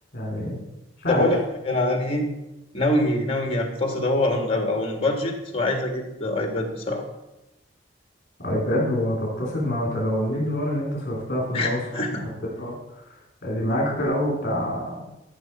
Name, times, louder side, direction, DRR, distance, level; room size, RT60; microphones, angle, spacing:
voice 1, 0.1-0.6 1.0-1.3 8.4-11.8 12.2-12.3 12.6-12.7 13.4-15.1, equal, 45° left, -3 dB, 3.1 m, -26 dB
voice 2, 1.1-1.4 1.6-2.3 2.7-7.0 11.5-12.2, left 1 dB, 30° left, 3 dB, 1.7 m, -24 dB
13.0 x 5.1 x 5.7 m, 0.94 s
head